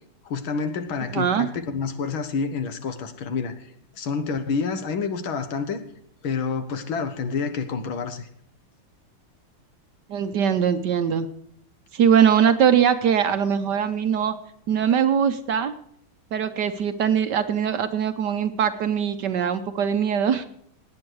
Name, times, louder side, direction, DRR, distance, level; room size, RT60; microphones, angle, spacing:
voice 1, 0.3-3.7 4.0-5.8 6.2-8.3, left 5 dB, 75° left, 9 dB, 2.1 m, -28 dB
voice 2, 1.1-1.5 10.1-11.3 11.9-14.3 14.7-15.7 16.3-20.4, right 8 dB, 60° right, 10 dB, 1.3 m, -21 dB
17.5 x 9.7 x 4.7 m, 0.68 s
omnidirectional pair, 2.3 m